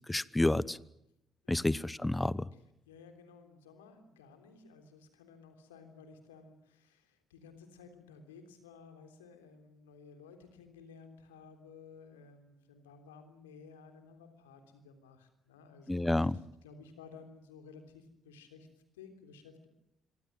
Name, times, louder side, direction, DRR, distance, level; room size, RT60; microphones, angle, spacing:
voice 1, 0.1-0.8 1.5-2.5 15.9-16.4, left 1 dB, 15° left, 21 dB, 1.0 m, -29 dB
voice 2, 1.4-1.8 2.5-2.6 2.8-18.7 18.9-19.7, left 5 dB, 80° left, 7 dB, 3.4 m, -55 dB
26.5 x 24.0 x 7.5 m, 0.81 s
figure-of-eight pair, 45°, 0 cm